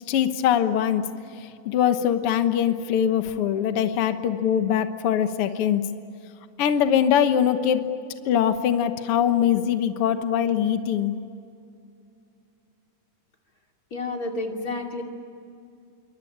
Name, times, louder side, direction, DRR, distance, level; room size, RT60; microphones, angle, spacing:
voice 1, 0.1-1.1 1.6-5.8 6.6-7.8 8.2-11.2, left 9 dB, 75° left, 8 dB, 1.3 m, -22 dB
voice 2, 13.9-15.0, left 2 dB, 25° left, 2 dB, 2.7 m, -30 dB
27.5 x 24.5 x 8.8 m, 2.5 s
omnidirectional pair, 4.2 m